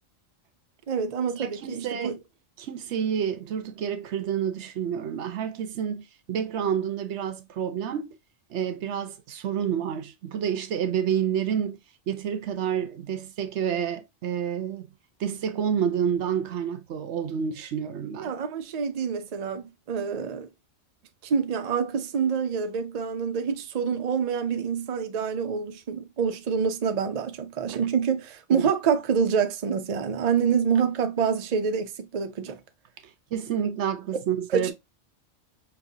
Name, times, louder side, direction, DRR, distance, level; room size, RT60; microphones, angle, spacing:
voice 1, 0.9-2.2 18.2-20.5 21.2-32.6 34.5-34.7, right 6 dB, 50° right, 0.5 m, -27 dB
voice 2, 1.4-2.1 2.6-8.1 8.5-11.8 12.1-14.9 15.2-18.3 27.7-27.8 28.5-28.7 33.3-34.7, right 8 dB, 75° right, 0.9 m, -29 dB
5.4 x 2.5 x 2.6 m
omnidirectional pair, 1.2 m